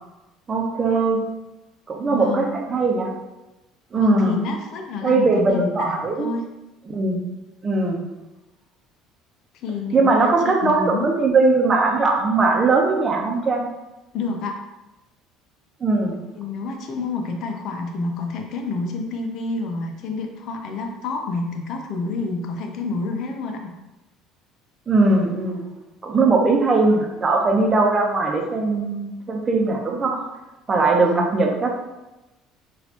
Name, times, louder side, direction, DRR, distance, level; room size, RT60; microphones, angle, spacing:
voice 1, 0.5-1.2 1.9-3.1 3.9-4.4 5.0-6.3 6.9-7.2 7.6-8.0 9.9-13.6 15.8-16.2 24.9-25.7 26.0-30.2 30.7-31.7, right 3 dB, 30° right, 1 dB, 0.8 m, -20 dB
voice 2, 2.1-2.5 4.0-6.4 9.6-11.1 14.1-14.6 16.4-23.7 30.9-31.3, left 3 dB, 60° left, 3 dB, 0.6 m, -28 dB
4.1 x 2.6 x 2.9 m, 1.0 s
supercardioid pair, 75°, 0 cm